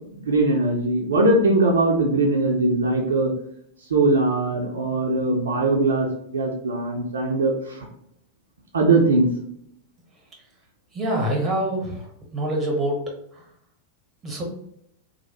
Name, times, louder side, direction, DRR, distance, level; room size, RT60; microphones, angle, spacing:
voice 1, 0.2-3.3 3.9-6.1 6.3-7.9 8.7-9.3, right 2 dB, 70° right, 0 dB, 0.5 m, -20 dB
voice 2, 10.9-12.1 12.3-13.0 14.2-14.4, right 1 dB, 20° right, -1 dB, 0.9 m, -25 dB
3.1 x 2.1 x 3.0 m, 0.73 s
figure-of-eight pair, 90°, 0 cm